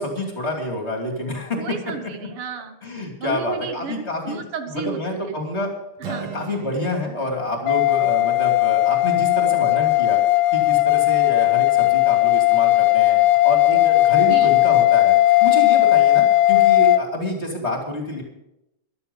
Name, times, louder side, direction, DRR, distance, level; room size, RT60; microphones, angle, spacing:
voice 1, 0.0-1.6 2.8-4.4 4.7-5.7 6.0-10.2 10.5-13.2 13.4-15.2 15.4-18.2, left 1 dB, 30° left, 2 dB, 3.0 m, -28 dB
voice 2, 1.6-2.8 3.2-5.4 6.0-6.2 14.1-14.5, right 6 dB, 85° right, 8 dB, 2.2 m, -33 dB
Acoustic guitar, 6.0-9.9, right 8 dB, 65° right, 1.7 m, -41 dB
sound 1, 7.7-17.0, left 17 dB, 70° left, 1.2 m, -17 dB
14.0 x 12.0 x 5.4 m, 0.86 s
omnidirectional pair, 2.4 m